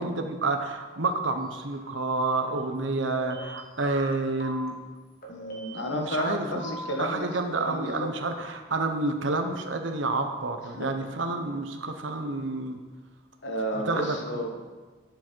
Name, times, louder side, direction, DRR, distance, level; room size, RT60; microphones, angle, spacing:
voice 1, 0.0-4.8 5.8-12.8 13.8-14.2, right 3 dB, 85° right, 6 dB, 1.0 m, -29 dB
sound 1, 1.6-1.9 2.2-2.5 3.0-4.1 4.4-4.7 5.2-6.3 6.6-6.9, right 1 dB, 50° left, 1.4 m, -40 dB
voice 2, 5.3-7.3 7.6-8.1 10.8-10.9 13.4-14.5, equal, 75° left, 2 dB, 1.5 m, -31 dB
10.0 x 7.1 x 4.6 m, 1.3 s
head